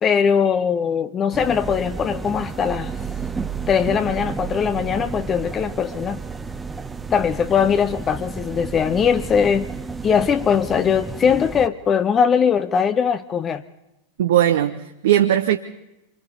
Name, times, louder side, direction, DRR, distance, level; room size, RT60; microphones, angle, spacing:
voice 1, 0.0-2.9 3.7-6.2 7.1-9.7 10.0-13.6, left 7 dB, 25° left, 0.7 m, -20 dB
sound 1, 1.3-11.7, right 5 dB, 10° right, 1.0 m, -32 dB
voice 2, 14.2-15.6, right 11 dB, 60° right, 0.9 m, -18 dB
27.5 x 24.5 x 4.1 m
figure-of-eight pair, 90°, 0 cm